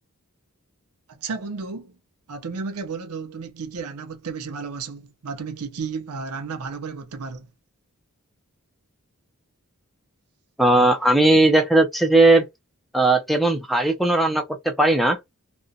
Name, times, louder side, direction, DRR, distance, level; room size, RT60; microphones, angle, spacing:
voice 1, 1.1-2.0 2.3-7.5, right 5 dB, 85° right, 0.5 m, -33 dB
voice 2, 10.6-12.4 12.9-15.2, right 2 dB, ahead, 0.4 m, -18 dB
2.4 x 2.1 x 2.6 m
head